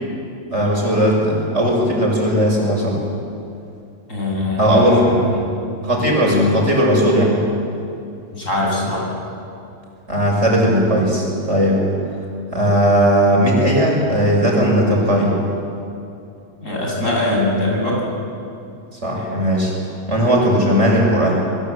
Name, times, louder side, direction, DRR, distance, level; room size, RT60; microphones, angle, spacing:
voice 1, 0.5-3.0 4.6-5.1 5.8-7.4 10.1-11.8 12.5-15.3 19.0-19.7 20.1-21.4, equal, 60° right, -1 dB, 6.8 m, -17 dB
voice 2, 4.1-5.5 6.2-6.5 8.3-9.1 16.6-18.0, left 2 dB, 75° left, -3 dB, 8.5 m, -21 dB
28.5 x 22.5 x 8.4 m, 2.6 s
omnidirectional pair, 1.4 m